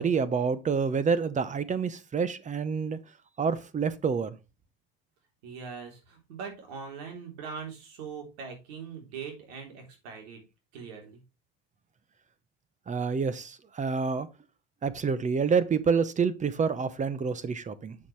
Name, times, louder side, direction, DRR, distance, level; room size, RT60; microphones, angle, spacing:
voice 1, 0.0-3.0 3.4-4.3 12.9-14.3 14.8-18.0, right 5 dB, 25° right, 0.9 m, -28 dB
voice 2, 5.4-10.4 10.7-11.2, right 6 dB, 80° right, 3.6 m, -41 dB
7.3 x 7.1 x 3.2 m
supercardioid pair, 110°, 30 cm